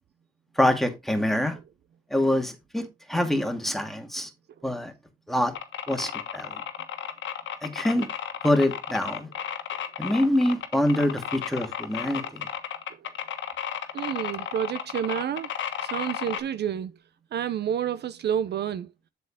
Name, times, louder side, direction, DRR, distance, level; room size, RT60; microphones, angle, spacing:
voice 1, 0.6-1.6 2.1-4.3 4.6-4.9 5.3-5.5 5.9-6.6 7.6-8.1 8.4-9.3 10.0-12.5, left 1 dB, ahead, 2.1 m, -25 dB
sound 1, 5.6-16.4, left 9 dB, 70° left, 1.4 m, -33 dB
voice 2, 13.9-15.5 15.8-16.9 17.3-18.9, right 9 dB, 55° right, 0.6 m, -29 dB
7.7 x 6.9 x 3.6 m
cardioid pair, 90°, 20 cm